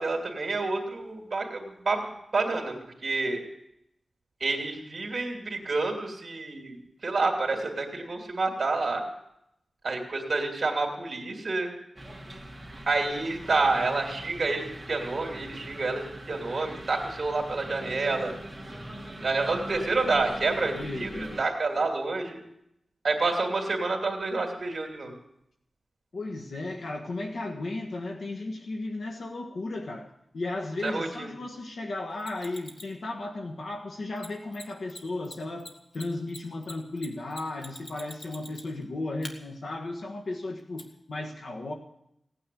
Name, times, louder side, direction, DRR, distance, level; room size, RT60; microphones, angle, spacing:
voice 1, 0.0-2.0 2.3-2.7 3.0-3.4 4.4-9.0 9.8-11.7 12.9-18.3 19.2-22.4 23.0-25.1 30.8-31.3, right 3 dB, 55° right, 2 dB, 2.9 m, -28 dB
sound 1, 12.0-21.4, right 1 dB, 10° right, 2.9 m, -42 dB
voice 2, 20.7-21.4 26.1-30.1 30.3-35.7 35.9-41.7, left 2 dB, 75° left, 2 dB, 1.5 m, -35 dB
Mechanisms, 32.2-33.0 34.2-34.3 34.5-34.6 34.9-35.0 35.2-38.8 39.2-39.3 40.8-40.9, left 2 dB, 55° left, 2.1 m, -43 dB
18.0 x 9.5 x 8.5 m, 0.79 s
wide cardioid pair, 105°, 0 cm